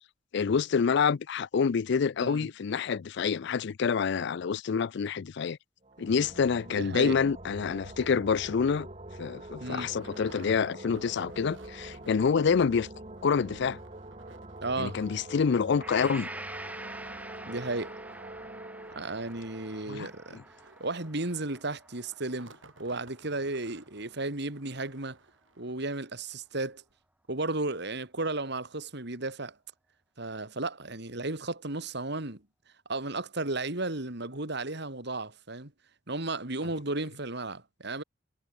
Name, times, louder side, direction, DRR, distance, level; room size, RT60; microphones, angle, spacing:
voice 1, 0.3-5.6 6.0-8.9 9.2-12.9 13.2-13.8 14.8-16.3 19.9-20.1, left 6 dB, 60° left, 0.4 m, -27 dB
sound 1, 5.8-21.4, right 1 dB, 35° right, 4.5 m, -45 dB
voice 2, 6.7-7.2 9.6-9.9 14.6-15.0 17.5-18.0 18.9-20.4 20.8-25.2 25.6-26.8 27.3-29.6 30.2-32.4 32.9-35.7 36.1-38.0, right 2 dB, 60° right, 3.0 m, -34 dB
sound 2, 8.5-8.7 9.2-9.3 9.5-12.4 12.7-12.8 13.1-25.9 26.4-26.5 26.9-27.0, right 3 dB, 75° right, 5.9 m, -57 dB
Gong, 15.8-23.8, right 1 dB, 10° right, 5.3 m, -46 dB
head